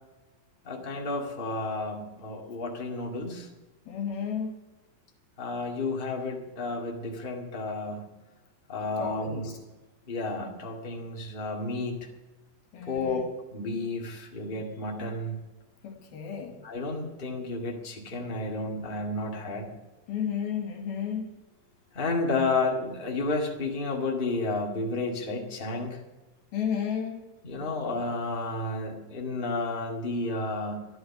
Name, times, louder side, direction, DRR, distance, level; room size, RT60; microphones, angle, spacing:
voice 1, 0.6-3.5 5.4-8.1 8.7-9.5 10.1-12.1 12.9-13.2 13.5-15.4 16.6-19.7 21.9-26.0 27.4-30.9, left 3 dB, 25° left, 0 dB, 1.2 m, -31 dB
voice 2, 3.9-4.6 9.0-9.6 12.7-13.2 15.8-16.6 20.1-21.3 26.5-27.2, left 8 dB, 75° left, 3 dB, 3.4 m, -32 dB
13.5 x 11.5 x 5.9 m, 1.1 s
omnidirectional pair, 4.5 m